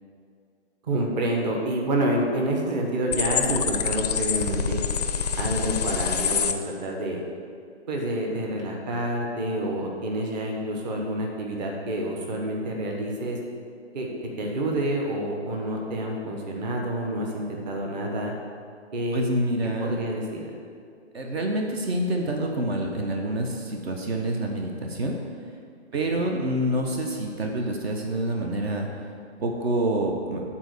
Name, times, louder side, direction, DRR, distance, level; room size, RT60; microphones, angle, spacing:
voice 1, 0.9-4.8 5.3-7.2 7.9-13.4 13.9-14.1 14.4-18.3 18.9-19.2 19.8-20.4 26.1-26.2, right 1 dB, 40° right, 0 dB, 1.2 m, -28 dB
sound 1, 3.1-6.5, left 7 dB, 40° left, 0.4 m, -26 dB
voice 2, 19.1-19.9 21.1-25.2 25.9-28.9 29.4-30.4, right 1 dB, 60° right, 2 dB, 1.1 m, -27 dB
8.9 x 4.2 x 6.8 m, 2.3 s
hypercardioid pair, 155°, 34 cm